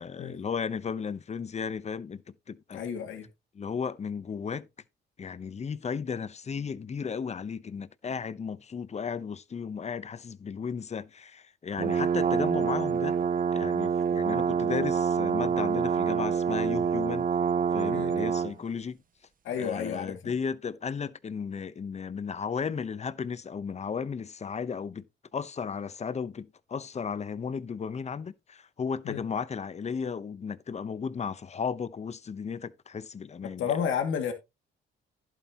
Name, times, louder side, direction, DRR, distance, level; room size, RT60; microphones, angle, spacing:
voice 1, 0.0-2.2 2.5-2.8 3.5-4.7 5.2-13.2 13.5-17.3 17.7-19.0 19.6-25.0 25.3-33.7, left 6 dB, 35° left, 0.9 m, -34 dB
voice 2, 2.7-3.3 17.9-18.1 19.4-20.3 29.0-29.2 33.6-34.3, left 7 dB, 75° left, 2.3 m, -31 dB
sound 1, 11.8-18.5, right 7 dB, 45° right, 1.3 m, -27 dB
11.5 x 8.5 x 2.9 m
cardioid pair, 90°, 20 cm